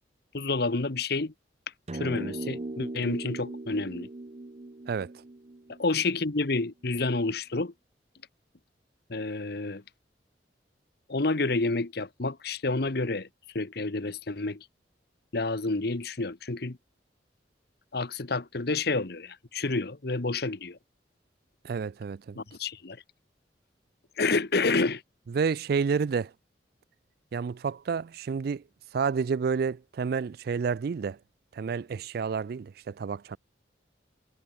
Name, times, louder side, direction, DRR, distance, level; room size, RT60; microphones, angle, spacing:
voice 1, 0.3-1.3 1.9-4.1 5.8-7.7 9.1-9.8 11.1-13.3 13.5-14.6 15.3-16.8 17.9-20.8 22.3-23.0 24.2-25.0, left 3 dB, 65° left, 1.2 m, -29 dB
sound 1, 1.9-6.4, right 2 dB, 40° right, 0.7 m, -39 dB
voice 2, 21.6-22.4 25.3-26.3 27.3-28.6 28.9-31.2 31.5-33.4, right 5 dB, 60° right, 0.4 m, -29 dB
head